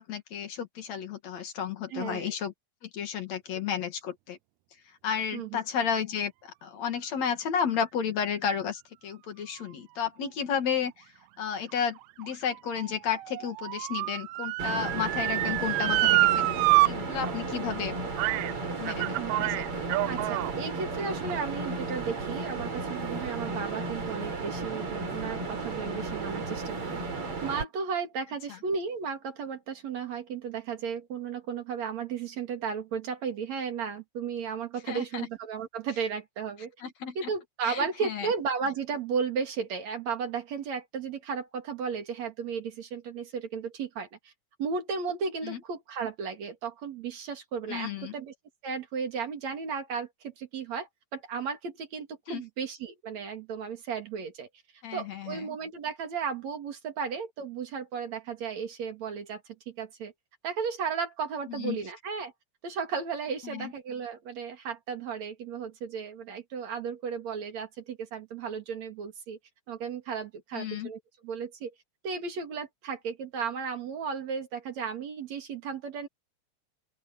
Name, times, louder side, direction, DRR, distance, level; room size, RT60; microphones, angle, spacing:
voice 1, 0.0-2.5 2.8-4.4 5.0-11.1 11.4-18.0 18.8-19.9 34.9-35.3 36.8-37.3 37.6-38.3 45.4-45.6 47.7-48.1 52.3-52.4 54.8-55.6 61.5-61.8 63.4-63.7 70.5-70.9, left 7 dB, 65° left, 3.2 m, -32 dB
voice 2, 1.9-2.3 5.3-5.6 19.2-19.5 20.1-27.0 27.4-36.7 37.2-44.3 44.6-48.3 48.6-54.5 54.9-59.4 59.7-60.1 60.4-62.3 62.6-69.4 69.7-71.7 72.0-76.1, right 6 dB, 65° right, 3.7 m, -34 dB
Motor vehicle (road) / Siren, 11.7-16.9 17.2-17.3 18.2-18.5 18.9-20.5 21.2-21.3, right 19 dB, 80° right, 1.9 m, -27 dB
sound 1, 14.6-27.6, right 3 dB, 50° right, 4.5 m, -34 dB
open air
omnidirectional pair, 3.3 m